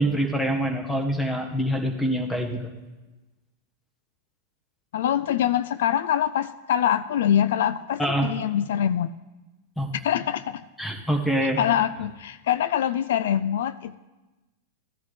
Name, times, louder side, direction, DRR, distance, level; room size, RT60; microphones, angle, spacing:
voice 1, 0.0-2.7 8.0-8.3 9.8-9.9 10.8-11.6, right 1 dB, 10° left, 4 dB, 1.5 m, -25 dB
voice 2, 4.9-9.1 10.0-10.6 11.4-14.0, left 10 dB, 75° left, 15 dB, 0.3 m, -24 dB
15.0 x 10.5 x 3.3 m, 1.1 s
hypercardioid pair, 110°, 0 cm